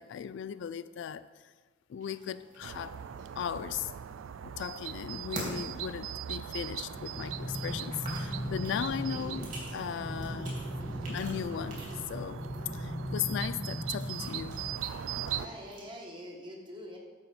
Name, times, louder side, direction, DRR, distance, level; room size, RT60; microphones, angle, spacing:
voice 1, 0.0-1.5 1.9-3.0 3.4-3.9 4.4-10.6 11.1-12.4 12.7-14.6, left 8 dB, 65° left, 0.3 m, -37 dB
sound 1, 2.0-15.8, right 1 dB, 40° right, 3.2 m, -48 dB
sound 2, 2.6-15.5, right 9 dB, 85° right, 0.3 m, -41 dB
sound 3, 6.9-14.9, equal, 10° left, 0.7 m, -38 dB
voice 2, 15.2-17.0, equal, 25° right, 1.6 m, -45 dB
11.5 x 4.3 x 7.0 m
head